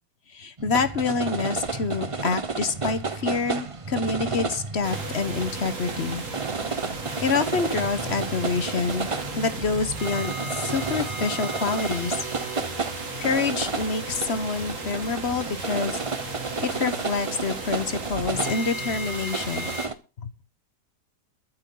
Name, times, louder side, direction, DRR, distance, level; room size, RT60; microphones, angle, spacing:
voice 1, 0.3-6.2 7.2-9.1 9.4-12.2 13.2-16.0 16.6-19.8 20.2-20.3, left 4 dB, 45° left, 12 dB, 1.2 m, -27 dB
sound 1, 0.6-19.9, right 4 dB, 25° right, 0.7 m, -32 dB
sound 2, 4.8-19.9, right 2 dB, 45° right, 2.6 m, -35 dB
22.5 x 8.2 x 3.9 m, 0.32 s
omnidirectional pair, 1.8 m